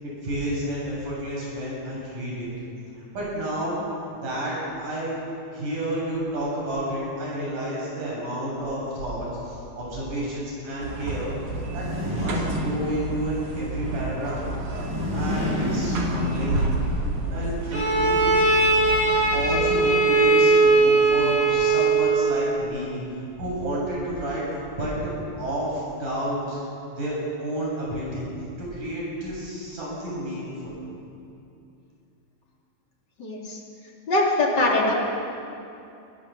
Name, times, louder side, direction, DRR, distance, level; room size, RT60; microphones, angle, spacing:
voice 1, 0.0-2.5 3.0-3.7 4.2-5.2 5.5-14.4 15.1-16.6 17.2-18.3 19.3-24.5 24.8-25.0 25.4-26.6 26.9-28.3 28.6-30.7, right 1 dB, 90° right, -5 dB, 9.2 m, -30 dB
sound 1, 10.8-19.8, right 2 dB, 70° right, 4.1 m, -31 dB
sound 2, 11.5-13.3 14.6-16.8, left 1 dB, 10° right, 7.4 m, -29 dB
Bowed string instrument, 17.7-22.3, right 3 dB, 25° right, 3.5 m, -19 dB
voice 2, 33.2-33.6 34.1-35.0, left 2 dB, 35° left, -2 dB, 3.7 m, -22 dB
23.0 x 19.0 x 7.8 m, 2.7 s
omnidirectional pair, 3.6 m